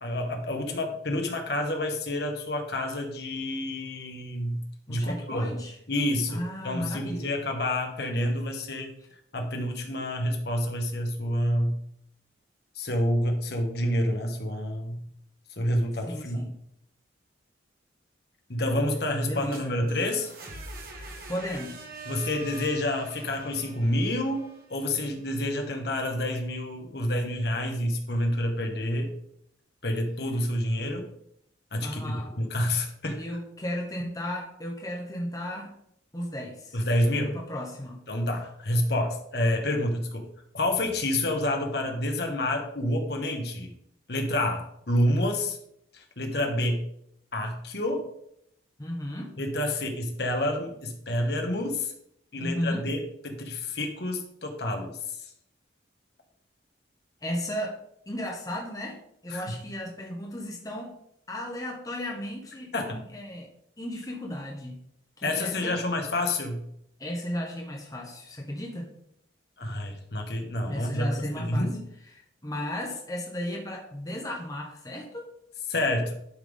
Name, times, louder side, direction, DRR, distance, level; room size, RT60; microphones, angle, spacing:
voice 1, 0.0-4.6 4.9-5.5 5.9-8.9 9.3-11.8 12.7-15.0 15.6-16.4 18.5-20.3 22.0-29.1 29.8-31.0 31.7-33.2 36.7-37.4 38.1-40.3 40.5-43.7 44.1-45.6 45.9-46.8 47.3-48.1 49.4-51.9 52.3-54.9 59.3-59.4 62.7-63.0 65.2-66.6 69.6-71.8 75.7-76.1, left 1 dB, 60° left, 3 dB, 1.5 m, -28 dB
voice 2, 4.9-5.8 6.3-7.3 16.1-16.5 19.2-19.8 20.9-21.8 31.8-32.3 33.1-35.7 36.1-36.8 37.1-38.0 48.8-49.3 52.3-52.9 57.2-57.8 58.1-60.9 61.3-63.5 63.8-64.8 65.2-65.8 67.0-68.9 70.7-71.7 72.1-75.3, equal, 20° left, 0 dB, 1.1 m, -35 dB
sound 1, 19.2-25.1, right 3 dB, 50° right, 1.8 m, -44 dB
11.5 x 5.9 x 3.7 m, 0.73 s
head